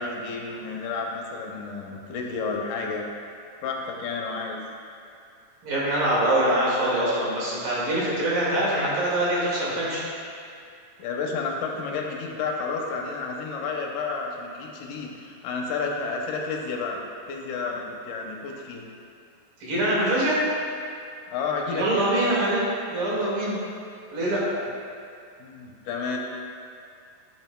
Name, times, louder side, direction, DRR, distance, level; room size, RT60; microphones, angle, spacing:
voice 1, 0.0-3.1 3.6-4.6 11.0-17.0 17.3-18.9 21.3-22.4 25.4-26.2, left 4 dB, 75° left, 0 dB, 2.2 m, -31 dB
voice 2, 5.6-10.0 19.6-20.4 21.7-22.7 22.9-23.6 24.1-24.4, right 1 dB, 90° right, -6 dB, 3.6 m, -24 dB
12.0 x 6.8 x 2.2 m, 2.4 s
omnidirectional pair, 3.8 m